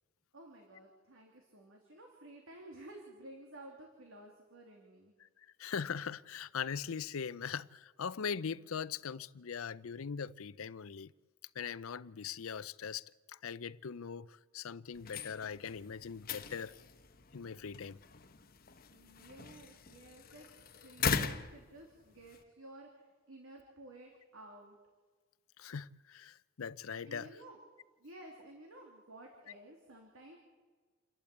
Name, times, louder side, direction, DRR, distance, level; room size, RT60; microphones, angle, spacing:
voice 1, 0.3-5.1 18.9-20.5 20.8-24.8 27.0-27.6 28.0-30.4, right 1 dB, 70° right, 3.0 m, -54 dB
voice 2, 5.6-11.1 11.5-16.7 17.3-18.0 25.6-27.3, left 6 dB, 80° left, 0.6 m, -41 dB
sound 1, 14.9-22.4, left 5 dB, 45° left, 1.0 m, -40 dB
28.5 x 12.0 x 8.5 m
head